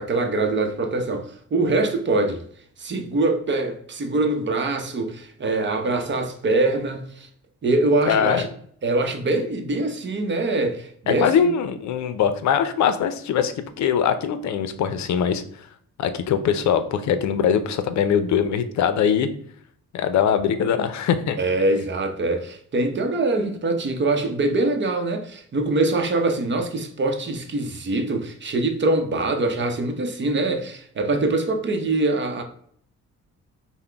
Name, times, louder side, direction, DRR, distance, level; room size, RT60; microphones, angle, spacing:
voice 1, 0.0-2.4 2.8-7.3 7.6-8.5 8.8-11.5 21.4-32.4, right 2 dB, 40° right, 0.8 m, -23 dB
voice 2, 8.1-8.5 11.1-15.4 16.0-19.3 19.9-21.4, left 8 dB, 65° left, 0.6 m, -22 dB
5.6 x 2.2 x 3.4 m
cardioid pair, 90°, 30 cm